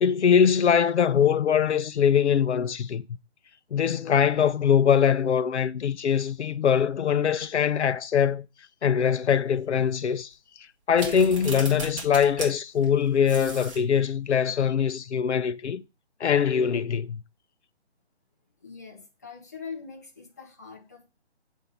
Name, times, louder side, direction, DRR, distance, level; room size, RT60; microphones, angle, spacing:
voice 1, 0.0-3.0 3.7-8.5 8.8-10.3 10.9-15.8 16.2-17.2, left 7 dB, 80° left, 0.6 m, -22 dB
sound 1, 10.9-12.5 12.8-12.9 13.2-13.8, right 3 dB, 30° right, 1.7 m, -36 dB
voice 2, 18.6-21.1, left 5 dB, 15° left, 0.6 m, -42 dB
7.1 x 2.7 x 5.2 m
hypercardioid pair, 165°, 34 cm